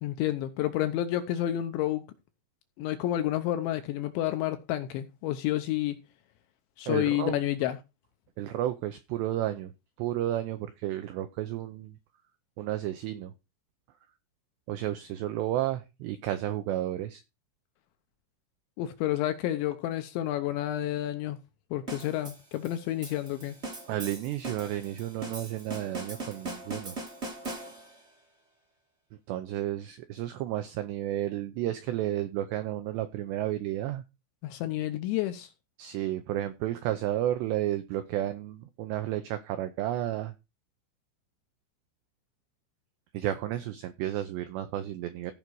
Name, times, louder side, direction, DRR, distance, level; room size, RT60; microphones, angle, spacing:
voice 1, 0.0-2.0 2.8-6.0 6.8-7.8 18.8-21.4 21.7-23.5 34.4-35.5, left 13 dB, 80° left, 2.8 m, -30 dB
voice 2, 6.9-7.4 8.4-9.7 10.0-11.9 12.6-13.3 14.7-17.2 23.9-27.0 29.3-34.0 35.8-40.3 43.1-45.3, right 13 dB, 85° right, 2.4 m, -32 dB
sound 1, 21.9-28.1, right 2 dB, 65° right, 0.6 m, -40 dB
16.0 x 5.3 x 4.7 m
omnidirectional pair, 5.9 m